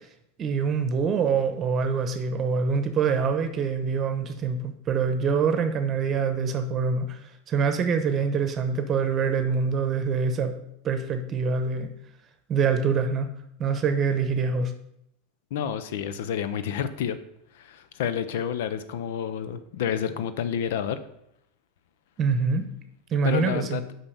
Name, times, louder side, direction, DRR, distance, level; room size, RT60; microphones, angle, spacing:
voice 1, 0.4-7.2 7.5-10.5 10.8-11.9 12.5-13.3 13.6-14.7 22.2-22.6 23.1-23.8, right 5 dB, 35° right, 8 dB, 0.9 m, -25 dB
voice 2, 15.5-17.2 17.5-21.0 23.2-23.8, left 8 dB, 75° left, 12 dB, 0.6 m, -29 dB
5.6 x 5.6 x 6.8 m, 0.80 s
supercardioid pair, 115°, 0 cm